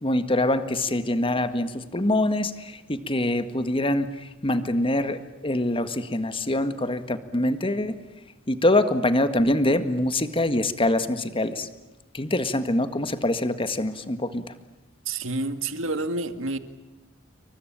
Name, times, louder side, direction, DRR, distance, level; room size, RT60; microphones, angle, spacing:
voice 1, 0.0-8.0 8.5-11.7 12.1-14.5, left 1 dB, 25° left, 10 dB, 1.7 m, -24 dB
voice 2, 15.1-16.6, right 2 dB, 75° right, 10 dB, 2.1 m, -28 dB
28.0 x 23.5 x 8.9 m, 1.0 s
head